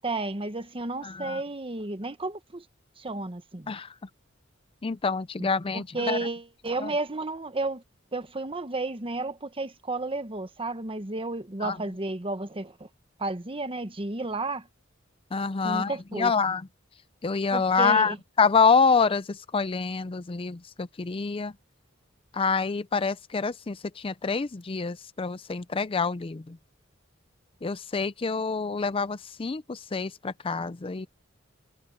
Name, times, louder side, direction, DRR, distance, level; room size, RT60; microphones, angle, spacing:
voice 1, 0.0-2.6 3.0-3.7 5.4-5.5 5.7-7.8 8.1-12.9 13.2-14.7 15.6-16.3 17.5-18.2, right 2 dB, 25° right, 1.2 m, -32 dB
voice 2, 1.0-1.4 3.7-3.9 4.8-6.2 6.8-6.9 11.6-11.8 15.3-16.7 17.2-21.5 22.3-26.6 27.6-31.1, left 5 dB, 25° left, 0.5 m, -26 dB
head